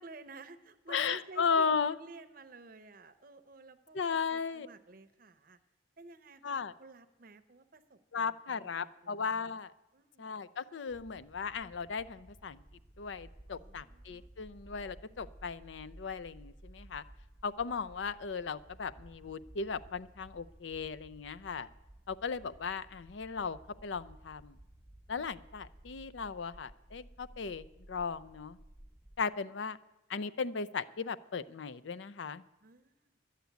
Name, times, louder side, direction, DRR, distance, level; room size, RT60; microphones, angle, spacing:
voice 1, 0.0-5.6 6.0-9.3 9.9-10.3 13.5-14.3 32.6-33.2, right 3 dB, 50° right, 10 dB, 0.7 m, -53 dB
voice 2, 0.9-2.0 3.9-4.7 6.4-6.7 8.1-9.7 10.2-12.6 13.0-17.0 17.4-21.7 22.1-24.6 25.1-28.6 29.2-29.8 30.1-32.4, left 5 dB, 75° left, 14 dB, 0.5 m, -36 dB
sound 1, 10.9-29.2, right 1 dB, ahead, 0.4 m, -56 dB
11.5 x 8.3 x 9.3 m, 0.95 s
head